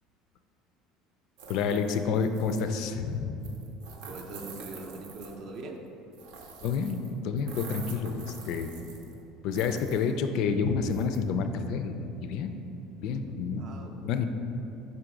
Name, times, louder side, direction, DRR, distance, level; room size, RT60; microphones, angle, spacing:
sound 1, 1.4-2.8 3.4-5.6 6.1-7.1 7.4-9.2 9.5-10.1 10.9-11.2, right 5 dB, 85° right, 0.7 m, -46 dB
voice 1, 1.5-3.5 6.6-8.7 9.4-12.5 13.0-13.6 14.0-14.3, left 5 dB, 55° left, 8 dB, 0.3 m, -29 dB
voice 2, 4.0-5.8 13.4-14.0, right 3 dB, 45° right, 3 dB, 0.5 m, -42 dB
5.8 x 3.9 x 4.7 m, 2.9 s
cardioid pair, 170°, 0 cm